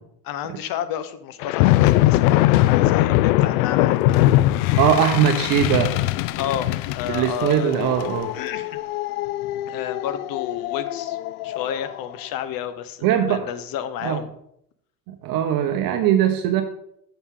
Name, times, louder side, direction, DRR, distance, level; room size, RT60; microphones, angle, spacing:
voice 1, 0.2-4.4 6.4-7.7 8.3-8.8 9.7-11.2 11.4-14.3, left 10 dB, 50° left, 12 dB, 1.0 m, -31 dB
sound 1, 1.4-12.0, left 16 dB, 65° left, 0.5 m, -21 dB
voice 2, 4.8-5.9 7.1-8.3 13.0-13.4 14.0-14.2 15.2-16.6, right 10 dB, 50° right, 6 dB, 1.0 m, -20 dB
7.9 x 7.1 x 3.7 m, 0.72 s
hypercardioid pair, 85°, 46 cm